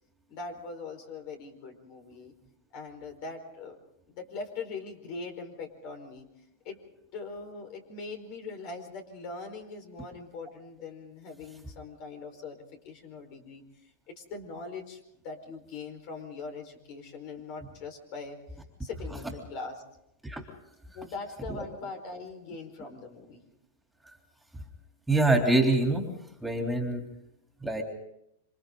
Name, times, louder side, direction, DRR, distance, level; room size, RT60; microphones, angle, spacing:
voice 1, 0.3-2.3 2.7-3.8 4.1-6.3 6.6-6.8 7.1-12.6 12.8-18.4 18.8-19.8 20.9-23.4, left 4 dB, 50° left, 6 dB, 4.7 m, -41 dB
voice 2, 25.1-26.1 26.4-27.0 27.6-27.8, right 2 dB, 5° right, 2 dB, 3.4 m, -25 dB
27.5 x 25.5 x 3.9 m, 0.81 s
hypercardioid pair, 125°, 0 cm